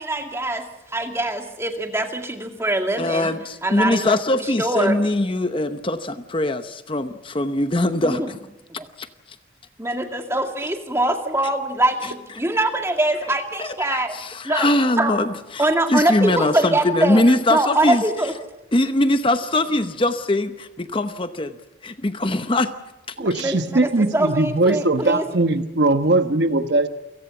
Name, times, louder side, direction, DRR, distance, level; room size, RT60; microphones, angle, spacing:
voice 1, 0.0-3.3 3.6-5.0 8.0-8.3 8.8-8.9 9.8-14.1 14.4-14.7 15.0-15.2 15.6-17.2 17.5-18.3 23.2-25.3, right 1 dB, 15° right, 4 dB, 2.2 m, -23 dB
voice 2, 3.0-8.4 9.0-9.1 13.6-18.0 18.7-21.6 21.8-22.7, left 1 dB, 30° left, 10 dB, 0.9 m, -22 dB
voice 3, 23.2-26.9, right 2 dB, 60° right, 9 dB, 1.2 m, -20 dB
29.0 x 17.5 x 7.1 m, 0.96 s
head